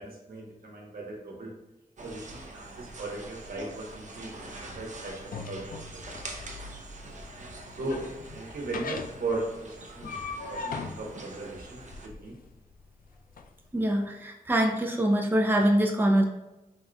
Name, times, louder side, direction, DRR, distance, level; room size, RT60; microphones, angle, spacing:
voice 1, 0.0-1.5 2.0-5.7 5.9-6.0 7.8-8.1 8.3-12.4, right 2 dB, 80° right, -1 dB, 1.0 m, -37 dB
sound 1, 2.0-12.1, right 2 dB, 55° right, 0.6 m, -44 dB
sound 2, 3.9-13.5, left 4 dB, 70° left, 0.4 m, -41 dB
voice 2, 13.7-16.3, right 1 dB, 15° right, 2 dB, 0.6 m, -24 dB
4.1 x 3.7 x 2.3 m, 0.99 s
wide cardioid pair, 70°, 15 cm